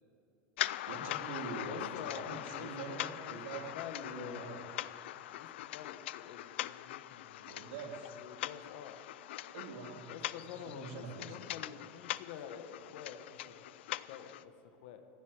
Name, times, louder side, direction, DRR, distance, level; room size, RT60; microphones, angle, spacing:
sound 1, 0.6-14.4, left 15 dB, 85° left, 0.4 m, -42 dB
voice 1, 0.9-4.6 7.5-8.1 9.5-10.2 10.7-11.4, right 4 dB, 75° right, 1 dB, 2.7 m, -44 dB
voice 2, 1.7-4.8 5.3-7.7 8.2-9.0 10.1-15.0, left 8 dB, 65° left, 8 dB, 1.4 m, -48 dB
15.0 x 8.3 x 9.6 m, 2.9 s
supercardioid pair, 155°, 6 cm